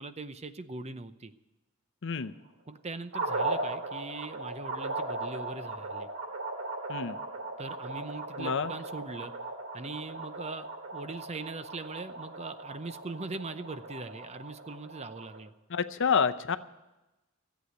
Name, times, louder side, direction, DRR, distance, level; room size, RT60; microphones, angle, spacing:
voice 1, 0.0-1.3 2.7-6.1 7.6-9.3 9.7-15.5, right 3 dB, 30° right, 11 dB, 0.7 m, -41 dB
voice 2, 2.0-2.3 6.9-7.2 8.4-8.7 15.7-16.6, left 6 dB, 60° left, 12 dB, 0.7 m, -28 dB
sound 1, 3.1-15.4, right 2 dB, 85° right, 2.9 m, -37 dB
14.5 x 8.3 x 9.4 m, 1.0 s
head